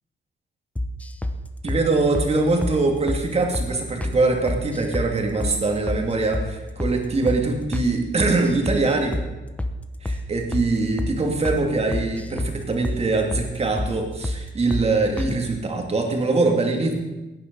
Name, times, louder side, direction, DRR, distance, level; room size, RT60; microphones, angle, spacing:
sound 1, 0.8-1.4 1.7-1.8 2.1-2.3 2.6-2.8 3.1-3.2 3.5-3.7 4.0-4.2 4.5-5.1 5.4-5.6 5.9-6.0 6.3-6.5 6.8-7.0 7.3-7.4 7.7-7.9 8.2-8.8 9.1-9.3 9.6-9.8 10.1-10.2 10.5-10.7 11.0-11.1 11.4-11.6 11.9-12.5 12.8-13.0 13.3-13.5 13.8-13.9 14.2-14.4 14.7-14.9 15.2-15.3, left 1 dB, 5° left, 0.8 m, -27 dB
voice 1, 1.6-9.2 10.0-16.9, right 3 dB, 30° right, 2 dB, 2.3 m, -23 dB
17.5 x 9.9 x 5.4 m, 1.1 s
wide cardioid pair, 155°, 20 cm